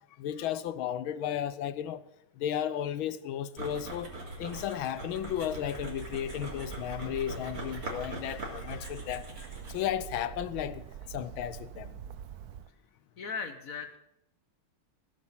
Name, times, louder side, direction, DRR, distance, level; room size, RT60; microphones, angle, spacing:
voice 1, 0.2-2.0 2.4-4.1 4.4-9.3 9.7-12.0, left 10 dB, 75° left, 1.5 m, -34 dB
sound 1, 3.6-9.9, right 2 dB, 40° right, 3.6 m, -42 dB
Bird, 5.1-12.7, right 9 dB, 80° right, 0.8 m, -45 dB
voice 2, 13.2-14.0, left 5 dB, 50° left, 1.2 m, -37 dB
16.0 x 8.5 x 7.4 m
omnidirectional pair, 2.4 m